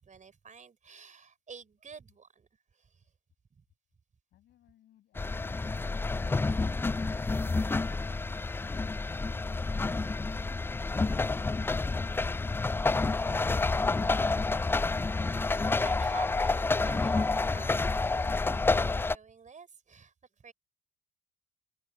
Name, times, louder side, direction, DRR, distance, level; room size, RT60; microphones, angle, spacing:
voice 1, 0.0-3.1 3.5-3.6 15.5-20.5, right 5 dB, 35° right, 5.4 m, -51 dB
voice 2, 4.3-7.5, left 12 dB, 55° left, 6.6 m, -66 dB
sound 1, 5.1-19.1, left 3 dB, 10° left, 0.4 m, -29 dB
open air
figure-of-eight pair, 45°, 21 cm